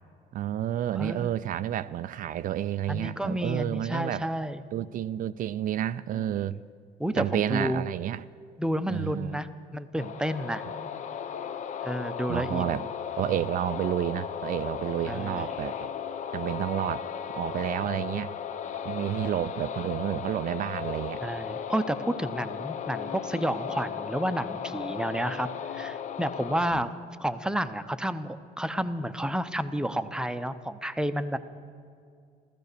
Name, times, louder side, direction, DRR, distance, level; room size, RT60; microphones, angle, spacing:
voice 1, 0.3-4.3 4.7-6.6 7.2-8.2 8.9-9.4 12.3-12.8 13.2-15.7 16.3-17.1 17.3-18.3 18.8-21.2, right 11 dB, 55° right, 14 dB, 0.4 m, -30 dB
voice 2, 1.0-1.3 2.9-4.6 6.1-6.6 7.0-7.8 8.6-10.6 11.8-12.8 15.1-15.5 17.9-18.0 21.2-25.5 25.7-26.9 27.2-31.4, right 1 dB, 5° right, 11 dB, 0.7 m, -31 dB
sound 1, 10.0-26.7, left 8 dB, 45° left, 0.7 m, -36 dB
15.0 x 13.5 x 6.7 m, 2.3 s
cardioid pair, 110°, 17 cm